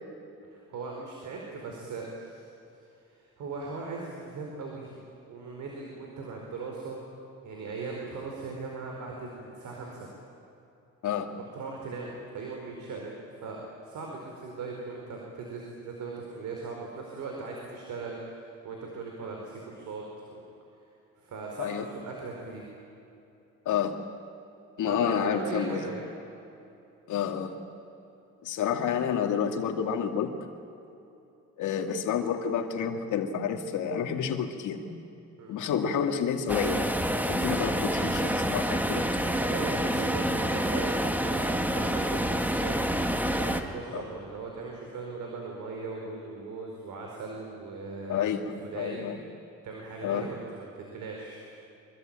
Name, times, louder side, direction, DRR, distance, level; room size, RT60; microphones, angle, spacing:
voice 1, 0.5-2.5 3.1-7.1 7.4-10.1 11.4-20.0 20.3-20.4 21.2-22.6 24.9-26.0 35.4-35.6 39.5-42.8 43.3-48.2 48.6-49.1 49.6-51.5, right 4 dB, 75° right, 0 dB, 4.8 m, -39 dB
voice 2, 21.6-21.9 23.7-24.0 24.8-25.8 27.1-27.6 28.4-30.4 31.6-34.9 35.5-36.9 37.3-39.1 43.9-44.0 48.1-49.2 50.0-50.3, left 8 dB, 80° left, 4 dB, 2.4 m, -29 dB
sound 1, 36.5-43.6, equal, 5° right, 2.0 m, -28 dB
25.0 x 23.5 x 9.0 m, 2.9 s
cardioid pair, 90°, 30 cm